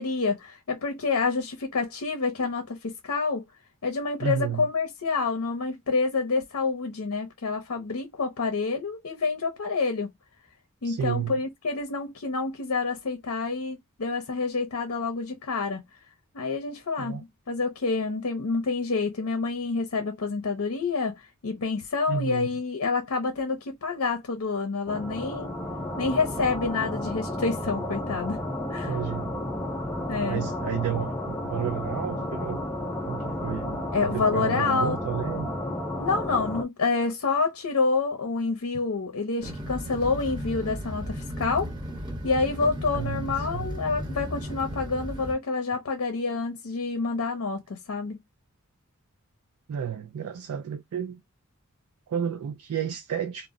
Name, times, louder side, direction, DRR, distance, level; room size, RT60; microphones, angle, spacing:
voice 1, 0.0-3.4 3.8-10.1 10.8-15.8 16.3-25.5 26.0-28.4 28.7-28.9 30.1-30.4 33.9-35.0 36.0-41.7 42.2-48.2, left 4 dB, 70° left, 0.6 m, -28 dB
voice 2, 4.2-4.7 10.8-11.4 17.0-17.2 22.1-22.6 28.9-29.3 30.2-32.7 33.1-35.5 42.9-43.7 49.7-51.2 52.1-53.5, right 8 dB, 85° right, 0.4 m, -31 dB
sound 1, 24.9-36.6, left 1 dB, 10° left, 0.5 m, -32 dB
sound 2, 39.4-45.3, equal, 20° right, 0.9 m, -35 dB
2.1 x 2.0 x 3.5 m
head